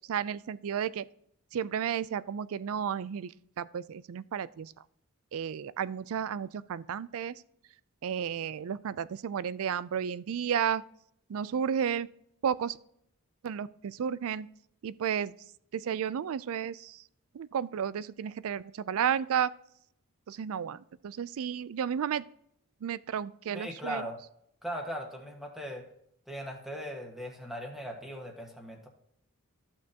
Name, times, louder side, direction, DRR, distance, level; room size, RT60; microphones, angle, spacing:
voice 1, 0.1-1.0 1.5-3.3 3.6-4.7 5.3-7.3 8.0-10.8 11.3-12.1 12.4-12.8 13.4-14.5 14.8-15.3 15.7-17.0 17.3-19.5 20.3-22.2 22.8-24.0, right 8 dB, 65° right, 19 dB, 0.4 m, -32 dB
voice 2, 23.5-24.2 24.6-25.8 26.3-28.9, equal, ahead, 1 dB, 1.5 m, -39 dB
14.0 x 6.2 x 2.9 m, 0.71 s
head